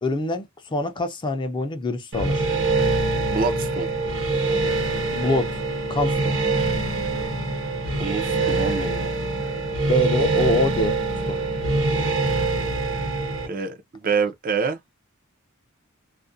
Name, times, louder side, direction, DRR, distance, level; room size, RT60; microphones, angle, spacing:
voice 1, 0.0-2.4 5.1-5.5 5.9-6.4 9.9-11.0 11.3-11.4, left 1 dB, 20° left, 0.4 m, -24 dB
sound 1, 2.1-13.5, right 3 dB, 60° right, 0.9 m, -24 dB
voice 2, 3.3-3.9 7.2-7.3 8.0-9.1 13.5-14.8, right 5 dB, 40° right, 0.5 m, -26 dB
2.4 x 2.1 x 2.5 m
head